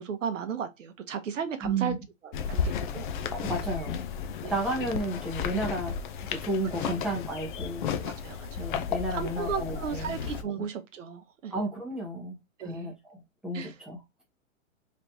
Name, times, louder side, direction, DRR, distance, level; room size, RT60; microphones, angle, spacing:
voice 1, 0.0-1.9 2.5-3.1 4.4-4.5 8.0-8.7 9.1-11.5 12.6-12.9 13.5-13.7, right 7 dB, 65° right, 0.8 m, -35 dB
voice 2, 1.6-2.0 3.4-4.1 4.5-5.9 6.3-7.8 8.6-10.2 10.6-10.7 11.5-14.2, right 1 dB, ahead, 0.9 m, -33 dB
sound 1, 2.3-10.4, left 7 dB, 40° left, 0.5 m, -33 dB
3.3 x 3.1 x 2.6 m
hypercardioid pair, 135°, 40 cm